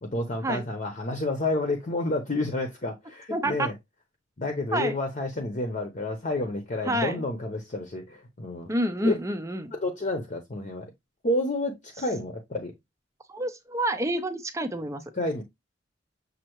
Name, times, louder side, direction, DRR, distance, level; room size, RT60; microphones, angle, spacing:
voice 1, 0.0-3.7 4.4-8.7 9.0-9.1 9.7-10.9 11.2-12.7 15.1-15.4, left 2 dB, 40° left, 0.8 m, -30 dB
voice 2, 3.3-3.7 4.7-5.0 6.9-7.2 8.7-9.7 13.3-15.0, right 1 dB, 15° right, 0.5 m, -28 dB
6.4 x 2.7 x 3.0 m
head